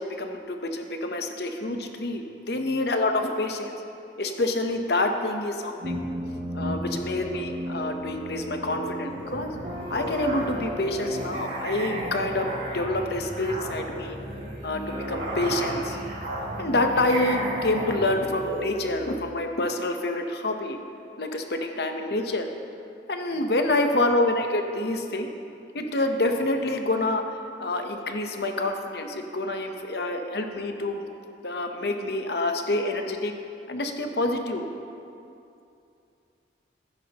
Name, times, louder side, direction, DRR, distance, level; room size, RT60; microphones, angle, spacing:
voice 1, 0.0-3.7 4.2-6.0 6.5-9.5 9.9-14.2 14.6-16.0 16.6-20.8 21.2-22.5 23.1-25.3 25.7-27.2 27.6-31.1 31.4-33.3 33.7-34.7, left 2 dB, 65° left, 5 dB, 0.9 m, -27 dB
sound 1, 5.8-11.2, equal, 65° right, 2.6 m, -34 dB
Musical instrument, 9.1-19.2, right 1 dB, 85° right, 2.9 m, -34 dB
14.5 x 10.5 x 2.9 m, 2.6 s
head